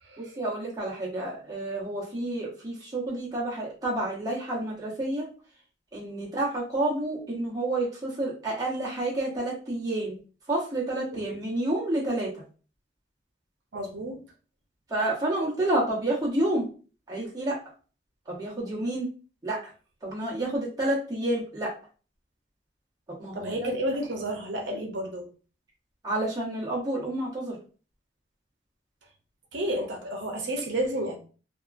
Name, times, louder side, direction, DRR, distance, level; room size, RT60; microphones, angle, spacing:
voice 1, 0.2-5.3 5.9-10.2 10.5-12.3 14.9-16.7 17.1-17.6 18.3-19.1 19.4-19.7 20.0-21.7 23.2-23.7 26.0-27.6, right 1 dB, 20° right, -5 dB, 0.9 m, -29 dB
voice 2, 13.7-14.2 23.3-25.2 29.5-31.2, right 1 dB, 80° right, 2 dB, 0.6 m, -31 dB
2.8 x 2.3 x 2.4 m, 0.37 s
head